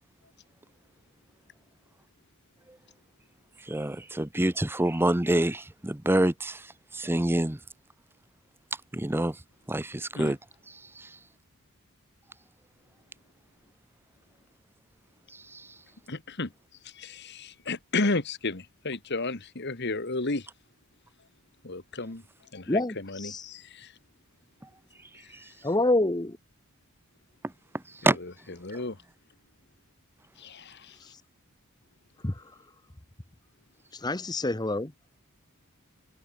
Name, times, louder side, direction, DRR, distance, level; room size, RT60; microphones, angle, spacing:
voice 1, 3.6-7.6 8.9-9.4 9.7-10.4 10.7-11.2 15.3-15.7 25.3-25.5 27.7-28.2, right 1 dB, 10° right, 0.7 m, -27 dB
voice 2, 16.1-16.5 16.8-20.5 21.6-22.2 22.5-23.9 28.0-28.3 28.6-29.0 30.4-31.0, left 3 dB, 50° left, 1.7 m, -33 dB
voice 3, 22.7-23.4 25.6-26.4 32.2-32.4 33.9-34.9, left 2 dB, 20° left, 0.9 m, -27 dB
head